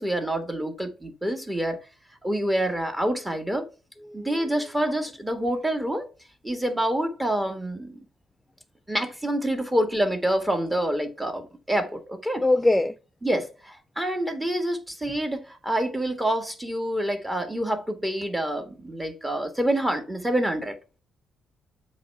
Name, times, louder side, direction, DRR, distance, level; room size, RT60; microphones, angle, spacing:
voice 1, 0.0-1.8 2.2-3.7 4.1-6.1 6.4-8.0 8.9-12.4 13.2-20.8, right 1 dB, 10° right, 1.5 m, -27 dB
voice 2, 4.0-4.7 12.4-12.9, left 2 dB, 10° left, 0.3 m, -24 dB
7.7 x 3.2 x 4.7 m
cardioid pair, 90°, 0 cm